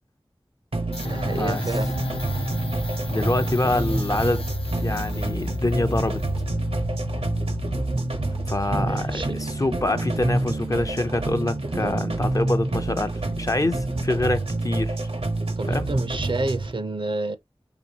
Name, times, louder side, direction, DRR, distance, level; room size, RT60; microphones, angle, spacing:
sound 1, 0.7-16.7, right 2 dB, 80° right, 0.9 m, -28 dB
sound 2, 0.9-9.4, left 3 dB, 70° left, 0.7 m, -33 dB
voice 1, 1.0-1.9 8.8-9.4 11.8-12.0 15.6-17.4, right 2 dB, 55° right, 0.5 m, -28 dB
voice 2, 3.1-4.4 4.8-6.2 8.5-15.0 15.7-15.9, left 2 dB, 35° left, 0.5 m, -25 dB
5.0 x 2.7 x 2.8 m
wide cardioid pair, 50°, 10 cm